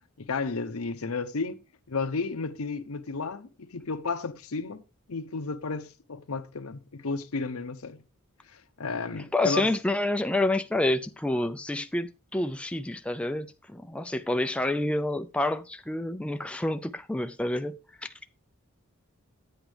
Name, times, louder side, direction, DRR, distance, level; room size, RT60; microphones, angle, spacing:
voice 1, 0.2-1.6 1.9-4.8 5.1-8.0 8.5-9.7, left 4 dB, 80° left, 0.8 m, -33 dB
voice 2, 9.3-18.1, left 1 dB, 5° left, 0.4 m, -28 dB
9.8 x 8.0 x 3.3 m
head